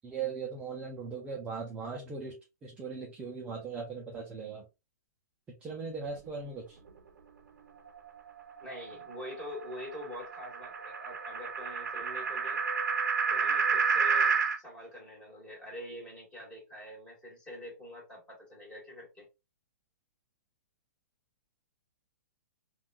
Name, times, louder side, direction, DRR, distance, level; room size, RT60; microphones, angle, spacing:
voice 1, 0.0-2.4 2.6-4.6 5.5-6.8, right 5 dB, 15° right, -1 dB, 0.5 m, -39 dB
sound 1, 7.9-14.6, right 5 dB, 90° right, 0.6 m, -31 dB
voice 2, 8.6-12.6 13.3-19.3, left 1 dB, 10° left, -3 dB, 1.5 m, -45 dB
3.5 x 2.3 x 2.5 m, 0.26 s
hypercardioid pair, 150°, 9 cm